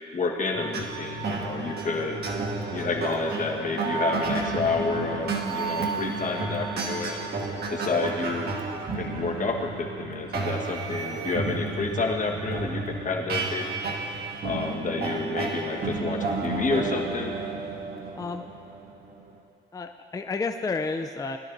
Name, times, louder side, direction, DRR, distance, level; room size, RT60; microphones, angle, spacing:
voice 1, 0.1-2.2 2.7-7.3 7.7-13.6 14.4-17.3, left 3 dB, 40° left, 1 dB, 1.4 m, -29 dB
sound 1, 0.5-19.3, right 3 dB, 55° right, 1.5 m, -32 dB
voice 2, 18.2-18.5 19.7-21.4, left 4 dB, 20° left, 5 dB, 0.5 m, -31 dB
20.0 x 12.5 x 2.6 m, 2.4 s
cardioid pair, 90°, 20 cm